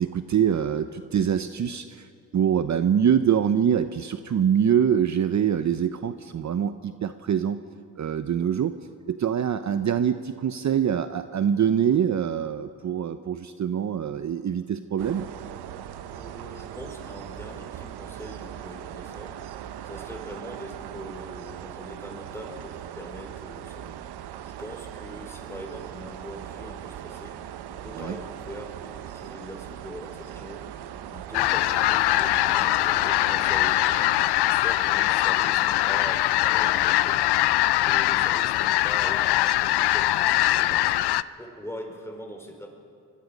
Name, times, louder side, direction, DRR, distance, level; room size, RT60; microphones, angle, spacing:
voice 1, 0.0-7.6 8.0-8.7 9.1-15.3 28.0-28.2, right 8 dB, 45° right, 10 dB, 0.8 m, -24 dB
sound 1, 15.0-34.3, right 10 dB, 80° right, 0.9 m, -40 dB
voice 2, 16.1-19.4 19.8-24.0 24.4-27.4 27.7-30.6 31.1-34.1 34.4-37.2 37.7-40.8 41.4-42.7, equal, 5° left, 2 dB, 5.0 m, -42 dB
sound 2, 31.3-41.2, left 15 dB, 85° left, 0.6 m, -22 dB
24.0 x 21.5 x 5.3 m, 2.3 s
cardioid pair, 75°, 38 cm